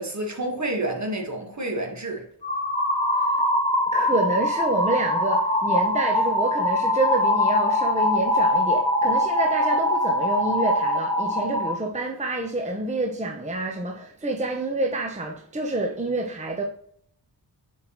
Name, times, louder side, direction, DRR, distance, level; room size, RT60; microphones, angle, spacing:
voice 1, 0.0-2.2, right 1 dB, 45° right, 1.5 m, -29 dB
sound 1, 2.4-11.7, left 1 dB, 15° left, 1.6 m, -23 dB
voice 2, 3.9-16.6, right 2 dB, 20° right, 0.7 m, -28 dB
7.4 x 4.6 x 2.9 m
wide cardioid pair, 110°, 40 cm